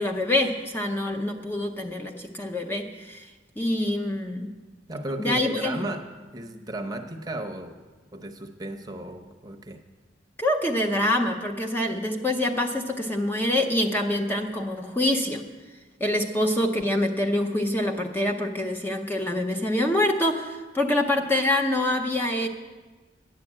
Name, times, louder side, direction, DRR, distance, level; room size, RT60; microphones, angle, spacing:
voice 1, 0.0-3.3 3.6-4.5 5.2-5.8 10.4-15.5 16.0-22.5, left 1 dB, 10° left, 2 dB, 0.7 m, -25 dB
voice 2, 4.9-7.8 8.1-9.8, right 1 dB, 20° right, 5 dB, 0.8 m, -34 dB
10.5 x 7.5 x 8.7 m, 1.3 s
head